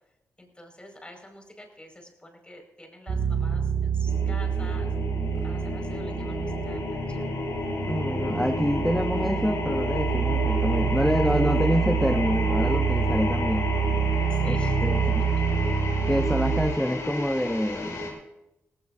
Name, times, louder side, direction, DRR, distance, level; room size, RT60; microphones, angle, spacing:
voice 1, 0.4-4.9 5.4-7.2 14.3-14.8, left 1 dB, 20° left, 3 dB, 5.3 m, -47 dB
sound 1, 3.1-16.7, right 7 dB, 70° right, 1.9 m, -27 dB
sound 2, 4.1-18.1, left 3 dB, 70° left, 4.0 m, -32 dB
voice 2, 7.9-13.7 14.4-15.2 16.1-18.2, equal, 5° left, 10 dB, 0.6 m, -27 dB
18.5 x 16.5 x 2.7 m, 0.92 s
cardioid pair, 55°, 6 cm